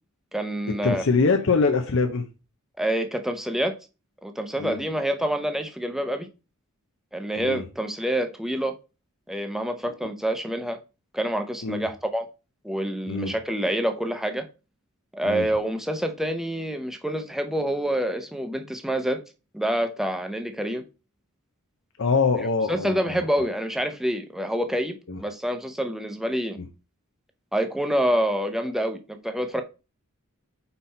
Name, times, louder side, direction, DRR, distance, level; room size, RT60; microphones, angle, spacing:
voice 1, 0.3-1.0 2.8-3.7 4.2-6.3 7.1-8.8 9.3-10.8 11.1-12.2 12.6-14.5 15.1-19.2 19.5-20.8 22.7-26.6 27.5-29.6, right 1 dB, ahead, 0.7 m, -27 dB
voice 2, 0.8-2.3 4.6-4.8 7.4-7.7 11.6-11.9 13.1-13.3 15.2-15.5 22.0-23.3 25.1-25.2 26.6-26.7, left 4 dB, 60° left, 0.7 m, -24 dB
5.5 x 4.2 x 4.3 m
head